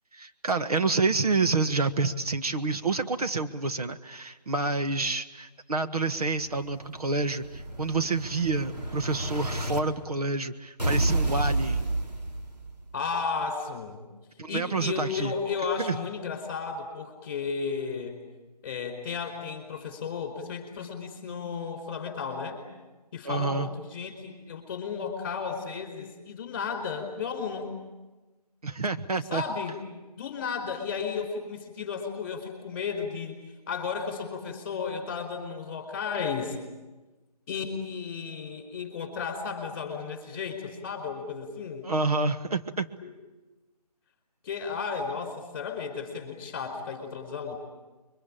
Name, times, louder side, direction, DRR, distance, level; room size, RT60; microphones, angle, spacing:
voice 1, 0.1-11.8 14.4-15.3 15.8-16.0 23.2-23.7 28.6-29.4 41.8-42.9, right 3 dB, 65° right, 8 dB, 1.5 m, -28 dB
Explosion, 6.4-9.8 10.8-12.8, right 2 dB, 80° right, 4.3 m, -30 dB
voice 2, 12.9-14.0 14.5-18.2 18.6-22.6 23.1-27.8 29.3-29.8 30.2-33.4 33.7-36.6 37.5-41.9 43.0-43.1 44.4-47.5, left 5 dB, 20° left, 4 dB, 4.6 m, -34 dB
26.5 x 24.0 x 8.9 m, 1.1 s
figure-of-eight pair, 170°, 21 cm